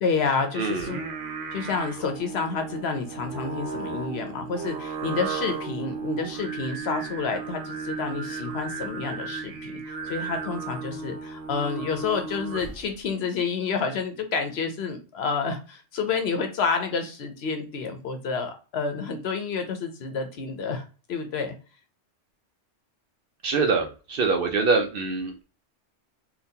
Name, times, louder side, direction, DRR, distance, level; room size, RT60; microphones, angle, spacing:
voice 1, 0.0-1.0 1.5-20.8 21.1-21.5, left 5 dB, 65° left, 6 dB, 0.9 m, -29 dB
voice 2, 0.6-0.9 23.4-25.4, right 4 dB, 60° right, 4 dB, 0.7 m, -24 dB
Singing, 0.7-12.9, right 5 dB, 75° right, 1.0 m, -35 dB
3.8 x 2.4 x 2.7 m, 0.35 s
omnidirectional pair, 1.2 m